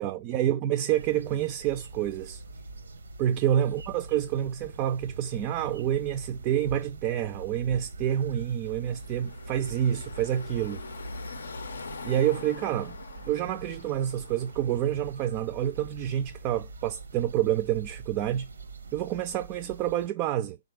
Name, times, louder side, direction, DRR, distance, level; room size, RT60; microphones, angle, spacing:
voice 1, 0.0-2.4 3.2-10.9 12.0-13.0 13.3-18.5 18.9-20.6, right 11 dB, 30° right, 0.3 m, -28 dB
sound 1, 0.9-20.1, right 3 dB, 85° right, 0.7 m, -43 dB
Car passing by / Traffic noise roadway noise, 8.5-15.5, left 4 dB, 80° left, 0.5 m, -44 dB
3.7 x 2.4 x 3.4 m
hypercardioid pair, 140°, 0 cm